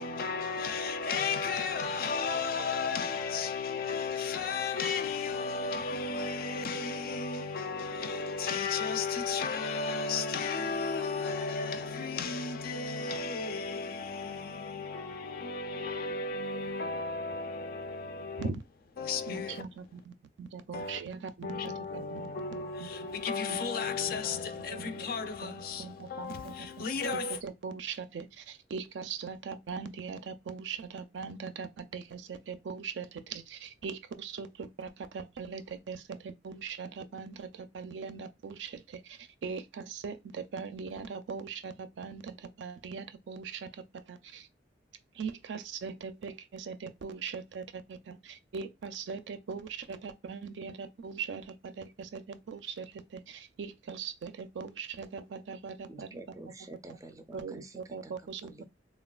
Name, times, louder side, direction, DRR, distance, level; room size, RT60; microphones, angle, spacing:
voice 1, 0.0-18.5 19.0-19.6 20.7-21.0 21.4-27.4, left 4 dB, 55° left, 0.4 m, -34 dB
voice 2, 19.3-20.1 20.4-23.1 23.5-23.6 24.1-26.9 27.3-44.5 45.1-56.2 56.9-57.0 57.3-58.6, right 5 dB, 80° right, 0.4 m, -41 dB
voice 3, 55.9-58.1 58.4-58.6, right 2 dB, 20° right, 0.4 m, -48 dB
3.2 x 2.3 x 2.2 m
head